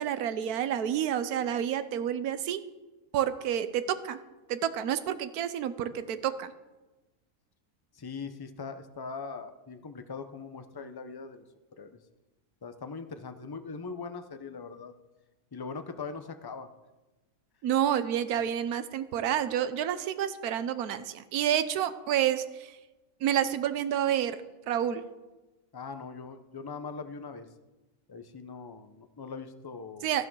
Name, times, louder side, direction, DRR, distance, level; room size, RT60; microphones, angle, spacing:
voice 1, 0.0-2.6 3.1-4.2 4.5-6.5 17.6-22.8 23.2-24.4 24.7-25.0 30.0-30.3, right 10 dB, 70° right, 12 dB, 1.3 m, -29 dB
voice 2, 7.9-11.4 11.8-12.0 12.6-14.9 15.5-16.7 25.7-27.5 28.1-30.1, left 4 dB, 25° left, 8 dB, 0.4 m, -41 dB
12.5 x 10.5 x 6.2 m, 1.1 s
omnidirectional pair, 1.7 m